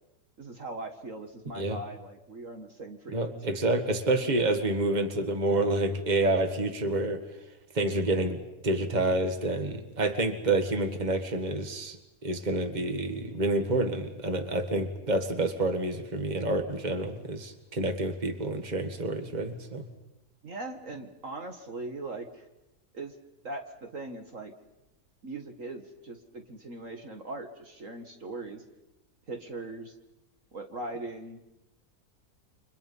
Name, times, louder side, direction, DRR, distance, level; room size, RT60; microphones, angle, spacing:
voice 1, 0.4-3.7 20.4-22.5 22.9-23.1 23.4-24.5 25.2-28.6 29.3-29.9 30.5-31.4, right 2 dB, 50° right, 5 dB, 2.0 m, -40 dB
voice 2, 3.1-7.2 7.7-12.0 12.2-19.9, right 2 dB, 25° right, 7 dB, 1.9 m, -28 dB
30.0 x 25.5 x 5.6 m, 0.94 s
omnidirectional pair, 1.8 m